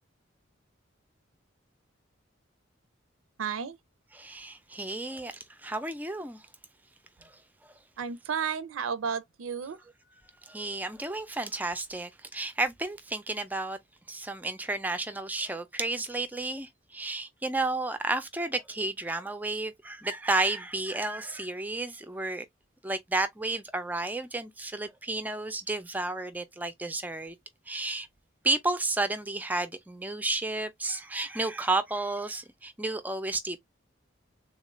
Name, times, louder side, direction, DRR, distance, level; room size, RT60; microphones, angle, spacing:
voice 1, 3.4-3.8 8.0-9.8, right 6 dB, 85° right, 0.5 m, -32 dB
voice 2, 4.1-6.4 7.2-7.3 10.5-13.8 14.1-22.5 22.8-27.3 27.7-28.1 28.4-33.6, right 2 dB, 10° right, 0.4 m, -32 dB
3.6 x 2.4 x 3.0 m
head